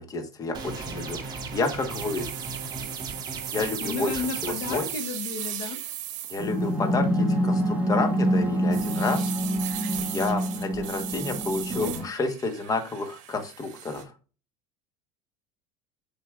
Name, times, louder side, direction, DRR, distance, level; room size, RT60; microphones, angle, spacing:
voice 1, 0.0-2.3 3.5-4.8 6.3-9.3 9.7-14.1, left 3 dB, 25° left, 6 dB, 1.3 m, -30 dB
sound 1, 0.5-4.9, right 4 dB, 25° right, 1.9 m, -36 dB
sound 2, 1.9-6.8 7.9-8.2 8.7-14.0, right 12 dB, 55° right, 1.5 m, -37 dB
voice 2, 3.8-5.8, left 6 dB, 70° left, 8 dB, 1.0 m, -33 dB
sound 3, 6.4-12.0, equal, 10° right, 1.9 m, -26 dB
8.1 x 5.0 x 2.5 m, 0.35 s
supercardioid pair, 125°, 15 cm